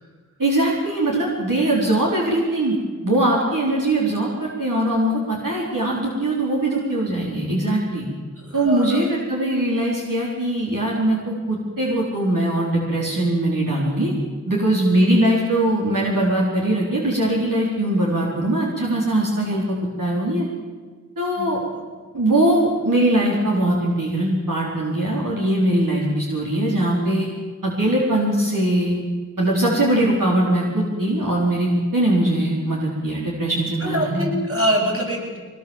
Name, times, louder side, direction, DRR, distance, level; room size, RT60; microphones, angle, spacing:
voice 1, 0.4-2.7 3.0-8.1 8.5-14.1 14.5-20.5 21.2-21.6 22.1-27.3 27.6-28.9 29.4-34.3, right 1 dB, 80° right, -4 dB, 4.4 m, -21 dB
voice 2, 8.4-9.0 21.4-21.5 33.8-35.4, equal, 45° right, -2 dB, 7.9 m, -24 dB
23.5 x 20.0 x 7.4 m, 1.5 s
wide cardioid pair, 45°, 32 cm